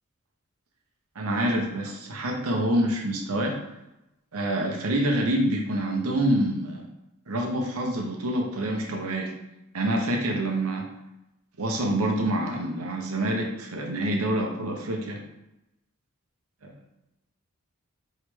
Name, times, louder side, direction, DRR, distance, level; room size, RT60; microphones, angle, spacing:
voice 1, 1.1-3.6 4.3-6.8 7.3-9.3 9.7-10.9 11.6-15.2 16.6-16.7, right 1 dB, 85° right, 1 dB, 0.9 m, -26 dB
4.8 x 3.2 x 3.2 m, 0.92 s
head